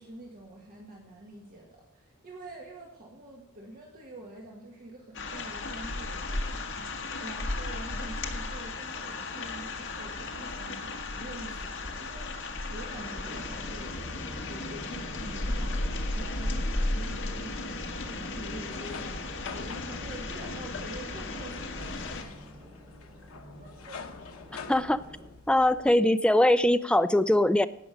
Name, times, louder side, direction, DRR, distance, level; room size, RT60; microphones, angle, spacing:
voice 1, 0.0-15.8 16.1-22.2 23.4-24.0 24.5-24.7, right 1 dB, 45° right, -2 dB, 1.7 m, -46 dB
sound 1, 5.1-22.2, left 2 dB, 60° left, 1.5 m, -35 dB
sound 2, 12.9-25.3, equal, 25° right, 2.9 m, -49 dB
sound 3, 18.2-25.9, left 5 dB, 80° left, 1.0 m, -46 dB
voice 2, 24.7-25.0 25.5-27.7, left 1 dB, 5° left, 11 dB, 0.4 m, -22 dB
17.0 x 6.2 x 5.2 m, 0.82 s
head